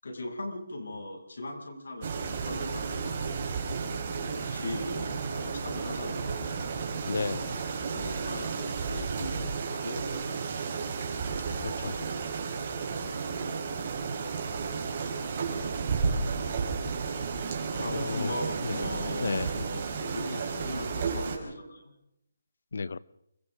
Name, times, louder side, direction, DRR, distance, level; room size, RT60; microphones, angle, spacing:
voice 1, 0.0-3.4 4.2-6.4 7.8-10.4 11.5-12.1 13.3-13.6 17.8-21.9, left 1 dB, 80° left, 7.2 m, -39 dB
sound 1, 2.0-21.4, right 5 dB, 30° right, 4.8 m, -33 dB
voice 2, 7.0-7.6 11.6-11.9 17.7-18.3 18.6-18.8 19.2-19.5 22.7-23.0, left 4 dB, 65° left, 0.9 m, -33 dB
29.0 x 23.5 x 3.8 m
hypercardioid pair, 175°, 0 cm